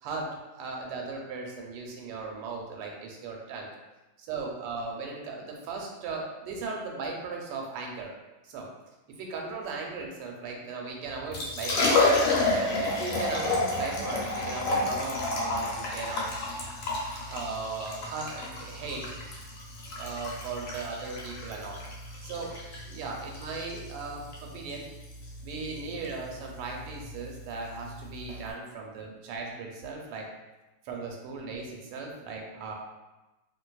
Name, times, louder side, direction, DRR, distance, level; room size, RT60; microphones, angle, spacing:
voice 1, 0.0-3.7 4.2-8.1 8.4-8.7 9.1-12.0 12.5-16.3 17.3-19.0 20.0-21.8 22.2-24.8 25.4-30.3 30.8-32.7, right 4 dB, 85° right, 0 dB, 1.6 m, -37 dB
Liquid, 11.1-28.5, left 2 dB, 85° left, 1.7 m, -30 dB
3.2 x 2.9 x 2.2 m, 1.1 s
omnidirectional pair, 2.4 m